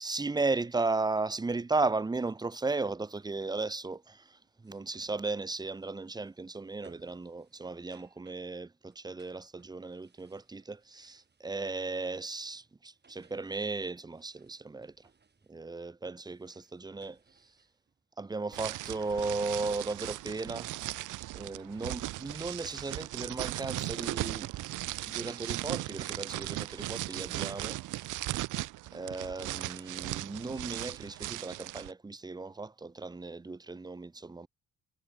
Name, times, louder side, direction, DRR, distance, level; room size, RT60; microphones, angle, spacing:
voice 1, 0.0-15.1 15.5-17.2 18.2-20.7 21.3-24.5 25.1-27.8 28.9-34.5, right 3 dB, 15° right, 0.7 m, -35 dB
sound 1, 3.5-23.4, right 5 dB, 35° right, 6.7 m, -67 dB
sound 2, 18.5-31.9, right 17 dB, 85° right, 0.9 m, -37 dB
cardioid pair, 90°, 30 cm